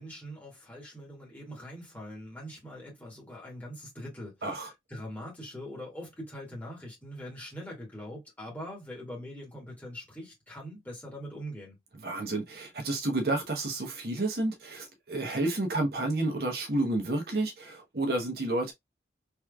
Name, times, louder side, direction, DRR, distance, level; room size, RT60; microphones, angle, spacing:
voice 1, 0.0-11.8, equal, 10° left, 1.8 m, -43 dB
voice 2, 12.0-18.7, right 2 dB, 55° right, 0.9 m, -30 dB
3.4 x 3.1 x 2.3 m
head